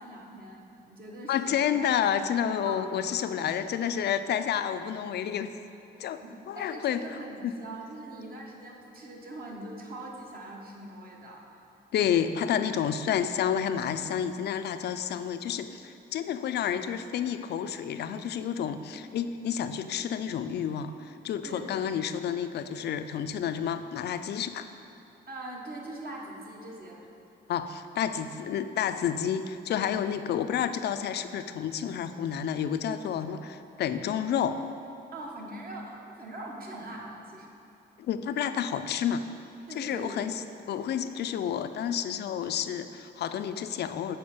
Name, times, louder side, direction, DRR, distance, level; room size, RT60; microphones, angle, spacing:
voice 1, 0.0-1.6 2.6-2.8 6.2-11.6 18.6-18.7 21.4-21.9 25.3-27.0 35.1-37.5 39.7-40.3, right 1 dB, 50° right, -1 dB, 1.2 m, -42 dB
voice 2, 1.3-5.5 6.0-7.5 11.9-24.7 27.5-34.6 38.0-39.2 39.8-44.2, left 8 dB, 55° left, 10 dB, 0.4 m, -30 dB
7.0 x 4.6 x 5.1 m, 2.8 s
cardioid pair, 90°, 20 cm